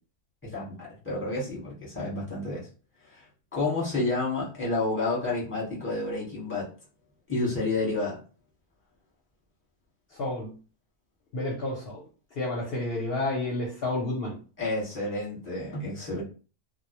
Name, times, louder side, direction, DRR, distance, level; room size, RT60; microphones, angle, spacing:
voice 1, 1.0-2.7 3.1-3.2 3.5-6.7 7.3-8.2 14.6-16.2, left 2 dB, 10° left, -5 dB, 0.9 m, -30 dB
voice 2, 10.2-10.5 11.3-12.0 12.4-14.3, left 2 dB, 60° left, -2 dB, 0.8 m, -30 dB
2.1 x 2.0 x 2.8 m, 0.36 s
omnidirectional pair, 1.3 m